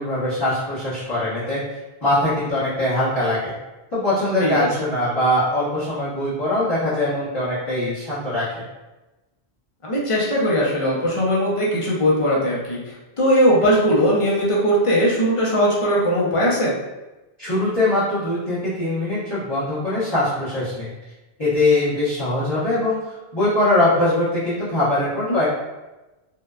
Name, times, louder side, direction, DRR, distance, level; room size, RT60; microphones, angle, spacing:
voice 1, 0.0-1.6 2.0-3.5 3.9-8.6 17.4-20.9 21.4-23.0 23.3-25.5, left 1 dB, 25° left, -14 dB, 0.8 m, -22 dB
voice 2, 9.9-16.8 25.3-25.4, equal, 45° left, -5 dB, 0.4 m, -19 dB
2.7 x 2.1 x 2.3 m, 1.1 s
omnidirectional pair, 1.1 m